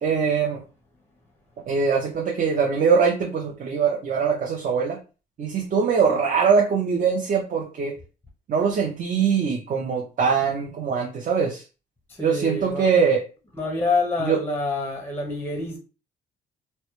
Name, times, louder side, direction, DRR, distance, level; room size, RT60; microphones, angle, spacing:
voice 1, 0.0-0.6 1.7-5.0 5.4-7.9 8.5-11.6 12.2-13.2 14.2-14.4, right 6 dB, 45° right, 0.5 m, -22 dB
voice 2, 12.1-12.9 13.6-15.8, left 3 dB, 10° left, 0.6 m, -27 dB
2.1 x 2.0 x 2.9 m
cardioid pair, 90°, 20 cm